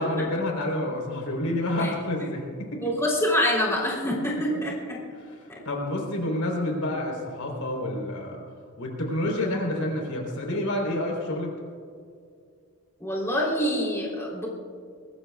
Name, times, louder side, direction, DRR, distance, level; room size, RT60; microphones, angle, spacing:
voice 1, 0.0-2.9 4.5-4.6 5.6-8.4 8.8-11.5, left 1 dB, 70° left, 0 dB, 3.9 m, -28 dB
voice 2, 2.8-5.0 13.0-14.5, equal, 10° left, -5 dB, 3.5 m, -26 dB
23.5 x 20.5 x 2.4 m, 2.3 s
head